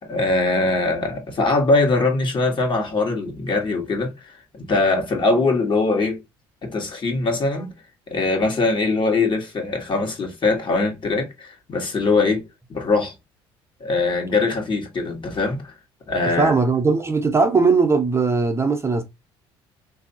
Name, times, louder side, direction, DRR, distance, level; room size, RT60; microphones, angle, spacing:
voice 1, 0.0-6.2 6.6-7.7 8.1-12.4 12.7-13.1 13.8-15.7 16.1-16.5, left 3 dB, 40° left, 1.5 m, -22 dB
voice 2, 16.2-19.0, right 4 dB, 20° right, 0.8 m, -19 dB
3.3 x 2.7 x 2.7 m
hypercardioid pair, 65°, 12 cm